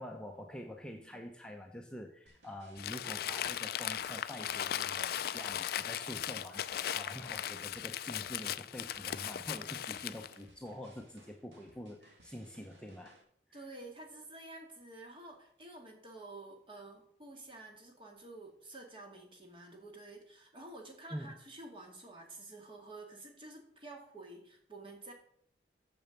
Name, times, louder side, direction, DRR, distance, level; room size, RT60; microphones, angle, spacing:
voice 1, 0.0-13.2 13.5-13.6 21.1-21.3, equal, 5° left, 1 dB, 0.8 m, -46 dB
sound 1, 2.3-13.2, right 1 dB, 80° right, 2.1 m, -64 dB
Crumpling crinkling, 2.8-10.4, left 10 dB, 55° left, 0.4 m, -38 dB
voice 2, 13.5-25.1, right 2 dB, 30° right, 1 dB, 2.2 m, -50 dB
7.0 x 7.0 x 7.0 m, 0.65 s
head